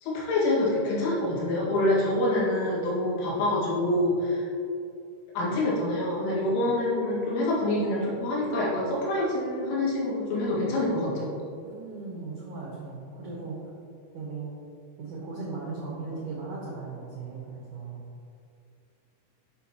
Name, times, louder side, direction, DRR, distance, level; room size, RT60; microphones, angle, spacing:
voice 1, 0.0-4.5 5.4-11.3, left 1 dB, 85° left, -5 dB, 4.3 m, -26 dB
voice 2, 11.6-13.6 14.1-14.5 15.0-18.0, right 4 dB, 85° right, -4 dB, 1.7 m, -37 dB
11.5 x 6.9 x 3.0 m, 2.6 s
omnidirectional pair, 5.6 m